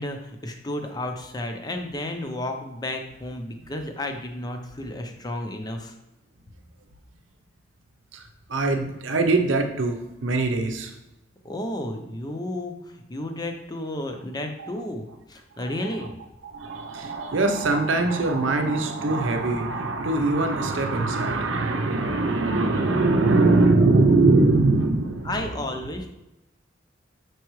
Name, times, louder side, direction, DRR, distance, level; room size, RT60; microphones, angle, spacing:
voice 1, 0.0-5.9 11.4-16.1 23.2-23.4 25.2-26.1, left 1 dB, 20° left, 4 dB, 0.6 m, -32 dB
voice 2, 8.1-10.9 14.6-14.8 15.8-16.1 16.4-25.5, right 2 dB, 75° right, 4 dB, 0.7 m, -22 dB
6.6 x 4.7 x 3.1 m, 0.95 s
head